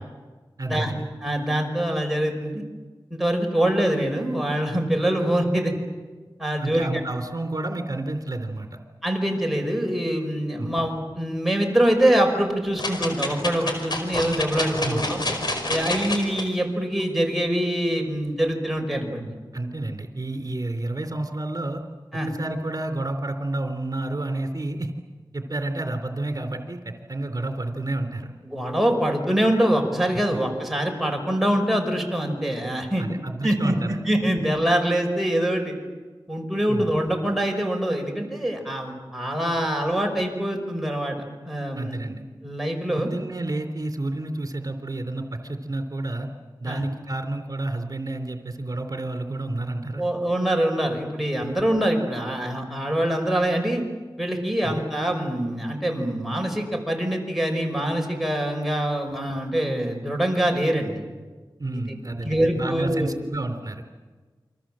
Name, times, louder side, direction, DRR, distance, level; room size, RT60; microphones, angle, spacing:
voice 1, 0.6-1.1 6.6-8.8 10.6-10.7 14.8-15.1 19.5-21.8 22.3-24.9 25.3-28.3 33.0-34.0 36.7-36.9 41.7-42.2 42.9-46.3 46.6-50.0 54.6-54.8 61.6-63.8, right 2 dB, 45° right, 6 dB, 3.5 m, -30 dB
voice 2, 1.2-2.6 3.1-5.7 6.4-6.9 9.0-15.2 15.7-19.3 22.1-22.3 28.4-33.0 33.4-33.7 34.1-35.7 36.3-42.1 42.4-43.1 46.7-46.8 50.0-53.8 54.2-61.0 61.7-61.8 62.2-63.2, right 1 dB, ahead, 2 dB, 5.6 m, -24 dB
sound 1, 12.8-16.4 17.0-17.1, left 2 dB, 60° left, 5.2 m, -28 dB
29.0 x 25.0 x 7.7 m, 1.3 s
wide cardioid pair, 60°, 8 cm